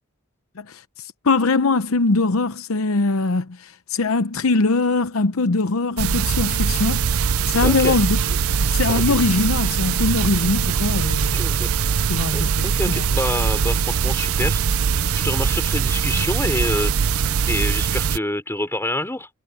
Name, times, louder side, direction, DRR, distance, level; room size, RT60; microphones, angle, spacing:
voice 1, 0.6-7.2 7.5-8.2 8.7-11.4 12.1-13.1, left 3 dB, 75° left, 0.8 m, -22 dB
sound 1, 6.0-18.2, right 6 dB, 85° right, 0.6 m, -21 dB
voice 2, 7.6-7.9 8.9-9.0 11.3-11.7 12.3-14.6 15.1-19.3, left 1 dB, 10° left, 3.3 m, -27 dB
head